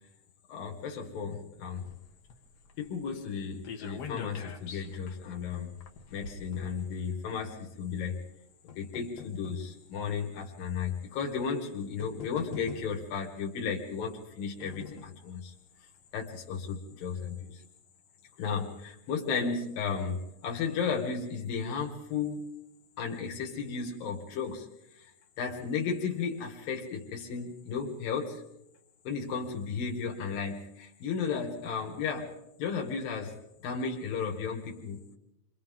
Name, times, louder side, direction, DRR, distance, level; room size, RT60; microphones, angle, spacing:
voice 1, 0.5-1.8 2.8-5.7 6.1-8.2 8.8-15.5 16.1-17.6 18.4-22.5 23.0-24.7 25.4-28.4 29.1-32.3 32.6-33.4 33.6-35.0, left 6 dB, 80° left, 1 dB, 3.7 m, -34 dB
sound 1, 1.8-7.3 8.1-9.7 10.5-10.6 11.6-11.7 12.0-13.2 14.1-15.2 15.6-15.7 16.0-16.1, left 6 dB, 55° left, 2.2 m, -45 dB
29.5 x 25.0 x 3.8 m, 0.88 s
omnidirectional pair, 4.0 m